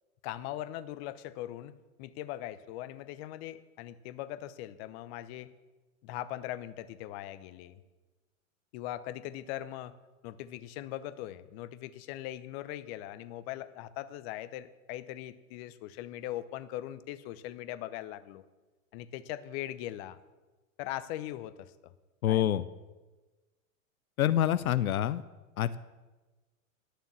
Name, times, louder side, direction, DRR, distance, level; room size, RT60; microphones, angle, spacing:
voice 1, 0.2-1.7 2.0-5.5 6.0-7.8 8.7-9.9 10.2-18.4 18.9-20.2 20.8-21.9 22.3-22.4, left 13 dB, 45° left, 13 dB, 0.9 m, -40 dB
voice 2, 22.2-22.6 24.2-25.2 25.6-25.8, left 11 dB, 85° left, 14 dB, 0.6 m, -26 dB
11.5 x 6.9 x 7.5 m, 1.2 s
hypercardioid pair, 110°, 42 cm